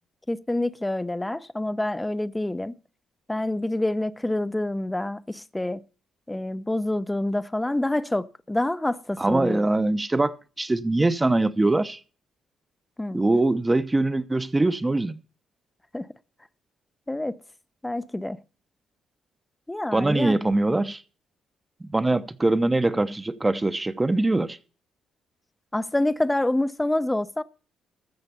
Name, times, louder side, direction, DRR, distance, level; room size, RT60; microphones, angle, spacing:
voice 1, 0.3-2.8 3.3-5.8 6.3-9.6 13.0-13.2 15.9-16.1 17.1-17.4 17.8-18.4 19.7-20.4 25.7-27.4, left 1 dB, 10° left, 0.6 m, -27 dB
voice 2, 9.2-12.0 13.1-15.2 19.9-21.0 21.8-24.6, right 2 dB, 15° right, 0.8 m, -23 dB
14.5 x 6.6 x 6.7 m
cardioid pair, 90°, 0 cm